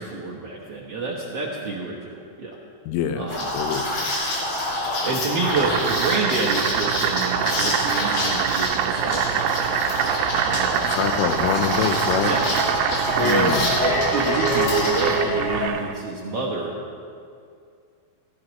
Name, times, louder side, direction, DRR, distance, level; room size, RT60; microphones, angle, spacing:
voice 1, 0.0-2.6 3.2-3.5 5.0-9.4 10.4-10.9 12.2-12.4 13.1-16.8, right 3 dB, 65° right, -5 dB, 1.5 m, -28 dB
voice 2, 2.9-3.3 3.5-3.9 10.9-12.3 13.2-13.7, left 9 dB, 90° left, 7 dB, 2.7 m, -25 dB
Liquid, 3.3-15.1, left 1 dB, 65° left, 4.5 m, -27 dB
Boiling, 5.4-16.0, right 10 dB, 85° right, 2.6 m, -25 dB
sound 1, 10.3-15.7, right 1 dB, 40° left, 3.3 m, -27 dB
16.5 x 16.0 x 3.1 m, 2.3 s
omnidirectional pair, 4.5 m